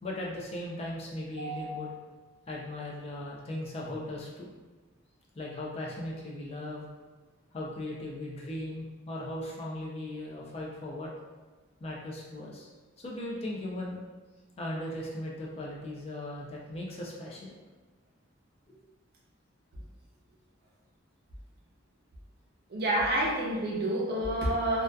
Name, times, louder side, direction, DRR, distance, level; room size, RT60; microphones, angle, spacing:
voice 1, 0.0-1.9 2.5-4.5 5.3-6.9 7.5-11.1 11.8-12.7 13.0-14.0 14.6-17.6 18.7-18.8, left 1 dB, 30° left, -3 dB, 0.3 m, -38 dB
voice 2, 1.4-1.8 22.7-24.8, right 1 dB, 50° right, -3 dB, 0.5 m, -29 dB
2.6 x 2.2 x 2.2 m, 1.3 s
head